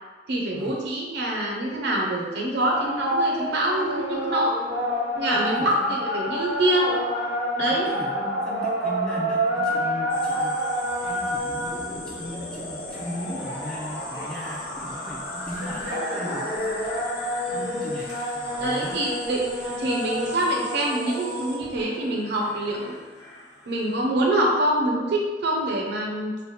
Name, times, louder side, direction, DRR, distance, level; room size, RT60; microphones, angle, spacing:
voice 1, 0.3-4.5 5.2-6.9 7.6-7.9 18.6-19.5 19.8-23.0 23.7-26.3, right 1 dB, 65° right, -1 dB, 0.7 m, -25 dB
sound 1, 2.7-21.8, equal, 85° right, 1.2 m, -29 dB
voice 2, 5.3-6.0 7.7-10.6 11.0-17.2 17.5-19.0, equal, 5° left, -5 dB, 0.5 m, -38 dB
sound 2, 10.1-24.0, left 3 dB, 80° left, 0.9 m, -42 dB
sound 3, 10.8-18.8, left 1 dB, 55° left, 0.6 m, -39 dB
3.3 x 2.1 x 4.1 m, 1.4 s
head